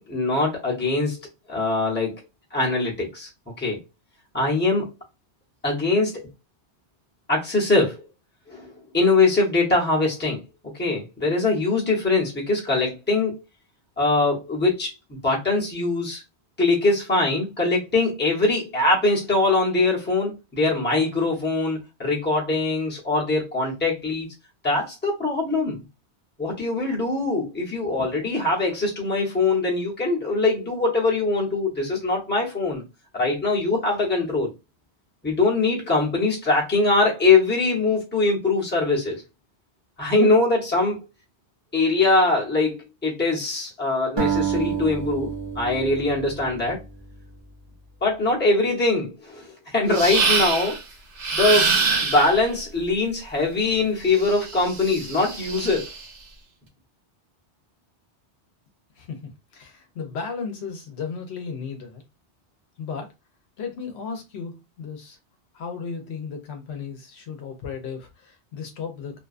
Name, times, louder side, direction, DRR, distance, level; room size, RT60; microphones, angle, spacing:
voice 1, 0.1-2.2 2.5-3.3 3.6-3.8 4.3-4.9 5.6-6.2 7.3-8.0 8.5-10.4 10.8-13.4 14.0-16.2 16.6-24.3 24.6-25.8 26.4-32.8 33.1-34.5 35.2-39.2 40.0-41.0 41.7-46.8 48.0-50.8 51.3-51.7 52.0-55.9, left 3 dB, 10° left, 0.7 m, -22 dB
sound 1, 44.2-47.4, right 7 dB, 35° right, 0.5 m, -29 dB
sound 2, 49.9-50.8 51.2-52.4 54.1-56.0, right 4 dB, 85° right, 1.0 m, -25 dB
voice 2, 59.0-62.0 62.8-63.1 63.6-65.2 65.5-69.2, left 5 dB, 75° left, 0.9 m, -35 dB
2.6 x 2.2 x 2.4 m
omnidirectional pair, 1.1 m